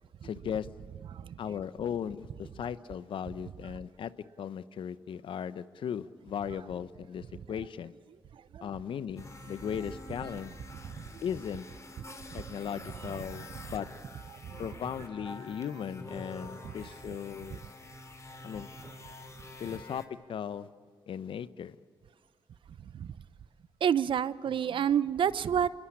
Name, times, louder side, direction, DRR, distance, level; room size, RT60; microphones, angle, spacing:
voice 1, 0.2-0.7 1.4-4.1 4.4-7.9 8.6-10.5 11.2-11.7 12.3-13.9 14.6-17.6 18.4-18.7 19.6-20.0 20.3-20.7 21.1-21.8, left 8 dB, 70° left, 15 dB, 0.9 m, -37 dB
sound 1, 9.2-20.1, left 2 dB, 35° left, 3.6 m, -47 dB
voice 2, 12.0-12.4 14.4-14.6 16.6-16.7 22.9-23.1 23.8-25.7, right 8 dB, 65° right, 17 dB, 0.8 m, -29 dB
25.5 x 21.5 x 8.7 m, 2.1 s
supercardioid pair, 55°, 9 cm